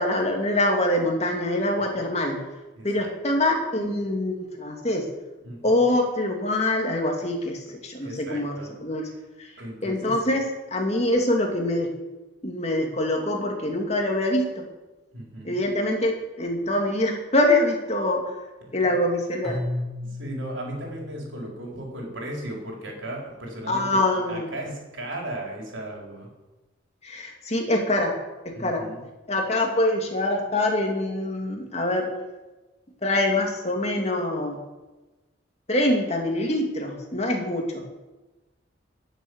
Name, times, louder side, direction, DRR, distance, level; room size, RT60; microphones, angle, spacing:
voice 1, 0.0-2.4 2.8-5.1 5.6-8.6 8.8-9.1 9.4-9.5 9.8-10.4 10.7-11.9 12.4-14.7 15.4-18.4 18.7-19.6 23.7-24.5 27.0-28.2 28.4-28.8 29.3-32.1 33.0-34.6 35.7-37.8, left 1 dB, 35° left, 1 dB, 2.6 m, -24 dB
voice 2, 2.8-3.1 5.4-5.7 7.7-8.7 9.6-10.4 15.1-15.6 18.7-18.8 20.0-26.3 28.5-29.0, right 1 dB, 90° right, -1 dB, 4.6 m, -36 dB
Keyboard (musical), 19.4-22.4, left 1 dB, ahead, 3.6 m, -35 dB
16.0 x 7.5 x 8.1 m, 1.1 s
head